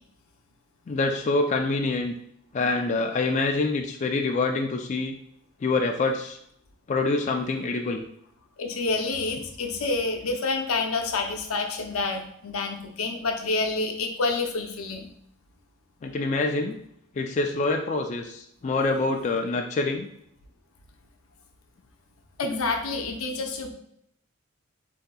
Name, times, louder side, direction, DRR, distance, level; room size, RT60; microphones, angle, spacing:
voice 1, 0.9-2.1 2.5-5.1 5.6-6.4 6.9-8.0 16.0-16.8 17.2-20.1, left 3 dB, 35° left, 3 dB, 0.3 m, -26 dB
voice 2, 8.6-15.1 22.4-23.7, left 3 dB, 85° left, 4 dB, 0.7 m, -28 dB
7.6 x 2.7 x 2.2 m, 0.71 s
head